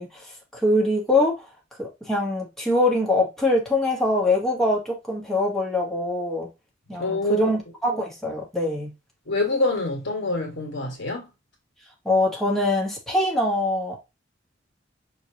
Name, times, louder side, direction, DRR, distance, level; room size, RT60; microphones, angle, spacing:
voice 1, 0.0-1.5 1.8-6.5 6.9-8.9 12.0-14.0, left 1 dB, ahead, 1.3 m, -23 dB
voice 2, 6.9-7.5 9.3-11.3, left 3 dB, 65° left, 1.6 m, -25 dB
5.6 x 3.1 x 2.8 m
head